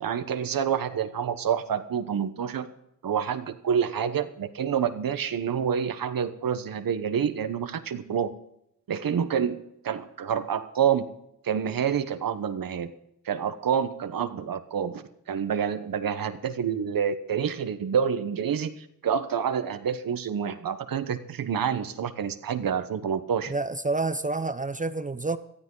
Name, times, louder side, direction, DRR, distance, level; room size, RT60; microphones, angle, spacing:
voice 1, 0.0-2.7 3.0-8.3 8.9-11.1 11.4-12.9 13.3-23.5, right 8 dB, 80° right, 11 dB, 1.0 m, -28 dB
voice 2, 23.5-25.4, right 3 dB, 25° right, 11 dB, 0.6 m, -28 dB
18.0 x 13.5 x 3.8 m, 0.79 s
wide cardioid pair, 90°, 34 cm